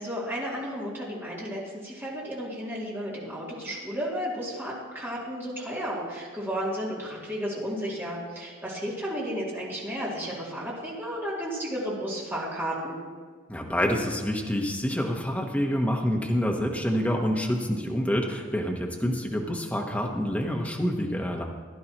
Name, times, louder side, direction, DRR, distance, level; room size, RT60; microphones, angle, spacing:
voice 1, 0.0-13.0, equal, 10° right, -7 dB, 2.7 m, -33 dB
voice 2, 13.5-21.4, equal, 5° left, 0 dB, 1.0 m, -27 dB
15.5 x 11.0 x 3.0 m, 1.5 s
head